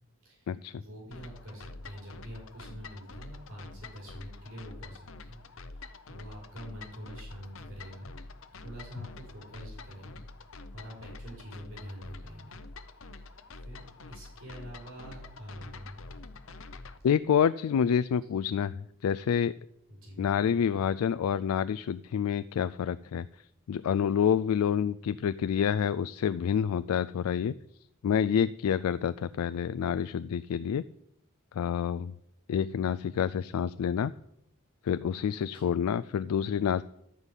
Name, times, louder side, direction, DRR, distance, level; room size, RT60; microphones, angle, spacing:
voice 1, 0.2-5.4 5.7-8.1 8.5-10.3 10.7-12.6 12.9-13.2 13.6-16.0 19.9-20.5 35.4-35.7, equal, 70° right, -3 dB, 4.7 m, -46 dB
sound 1, 1.1-17.0, left 3 dB, 65° left, 0.7 m, -47 dB
voice 2, 17.0-18.7 19.0-19.5 20.2-23.2 23.7-27.5 28.0-30.8 31.5-32.1 32.5-34.1 34.8-36.8, left 8 dB, 85° left, 14 dB, 0.3 m, -28 dB
11.5 x 5.4 x 8.1 m, 0.78 s
head